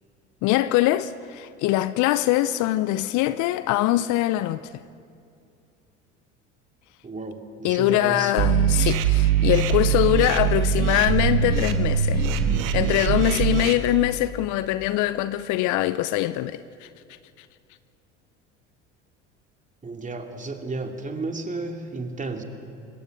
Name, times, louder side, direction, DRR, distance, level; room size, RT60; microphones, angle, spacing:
voice 1, 0.4-4.8 7.6-12.3 12.7-16.9 17.4-17.5, left 15 dB, 55° left, 0.7 m, -23 dB
voice 2, 7.0-8.4 19.8-22.4, right 3 dB, 20° right, 2.8 m, -33 dB
sound 1, 8.4-13.7, right 8 dB, 60° right, 1.9 m, -22 dB
26.5 x 21.0 x 6.7 m
hypercardioid pair, 70°, 36 cm